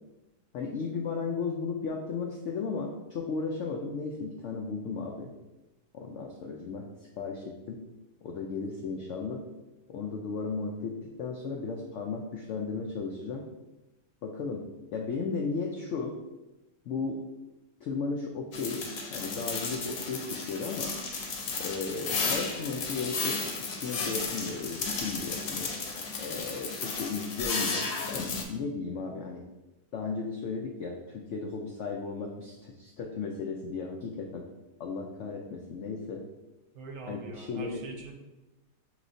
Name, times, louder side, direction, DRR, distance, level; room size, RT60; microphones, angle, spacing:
voice 1, 0.5-5.3 5.9-6.8 7.2-7.8 8.2-9.4 9.9-13.4 14.2-14.6 14.9-16.1 16.9-17.2 17.8-18.8 19.1-20.9 21.6-25.7 26.2-29.4 29.9-34.5 34.8-36.2 37.1-37.8, left 4 dB, 90° left, 1 dB, 0.6 m, -35 dB
sound 1, 18.5-28.4, left 4 dB, 65° left, 1.0 m, -34 dB
voice 2, 36.7-38.1, right 3 dB, 65° right, 3 dB, 1.0 m, -43 dB
6.2 x 3.0 x 2.6 m, 1.0 s
omnidirectional pair, 1.8 m